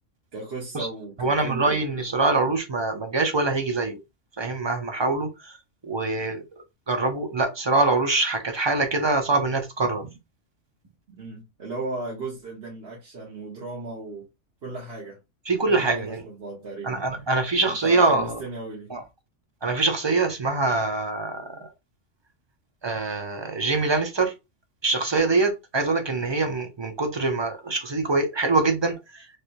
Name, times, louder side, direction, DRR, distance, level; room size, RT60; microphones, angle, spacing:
voice 1, 0.3-1.8 11.2-14.3 14.6-15.2 15.7-17.0 17.8-18.9, right 2 dB, 55° right, 1.3 m, -36 dB
voice 2, 1.2-4.0 4.4-5.5 5.8-6.4 6.9-10.1 15.5-16.2 16.8-18.4 18.9-19.0 19.6-21.5 22.8-24.3 24.8-29.4, right 3 dB, 35° right, 0.4 m, -24 dB
3.3 x 2.9 x 2.5 m
omnidirectional pair, 1.2 m